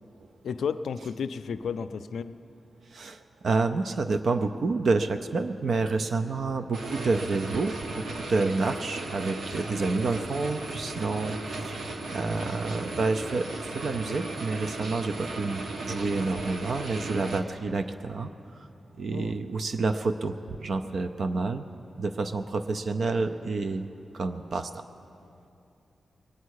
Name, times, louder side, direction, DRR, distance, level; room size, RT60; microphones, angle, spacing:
voice 1, 0.4-2.4 19.1-19.3, left 6 dB, 85° left, 12 dB, 0.4 m, -32 dB
voice 2, 2.9-13.5 13.7-18.3 19.0-20.4 20.6-21.6 22.0-23.9 24.1-24.8, right 3 dB, 55° right, 8 dB, 0.5 m, -29 dB
sound 1, 6.7-17.4, right 2 dB, 75° right, 1.2 m, -36 dB
22.0 x 9.4 x 6.4 m, 2.8 s
wide cardioid pair, 150°, 0 cm